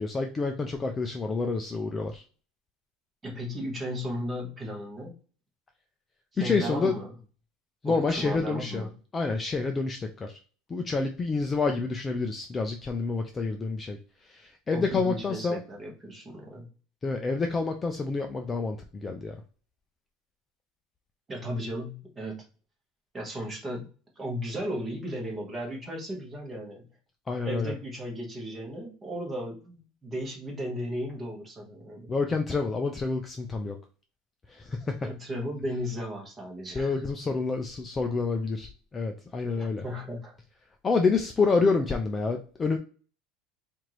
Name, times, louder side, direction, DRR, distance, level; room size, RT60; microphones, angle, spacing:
voice 1, 0.0-2.2 6.4-6.9 7.8-8.8 9.1-10.4 10.7-14.0 14.2-15.6 17.0-19.4 27.3-27.7 32.1-33.8 34.5-35.1 36.7-39.8 40.8-42.8, left 4 dB, 15° left, 4 dB, 0.3 m, -28 dB
voice 2, 3.2-5.1 6.4-7.1 7.8-8.9 14.7-16.7 21.3-22.4 23.1-23.9 24.2-26.8 27.4-32.1 35.0-36.9 39.5-40.4, equal, 15° right, 0 dB, 1.0 m, -35 dB
4.5 x 2.5 x 2.9 m, 0.38 s
cardioid pair, 170°, 0 cm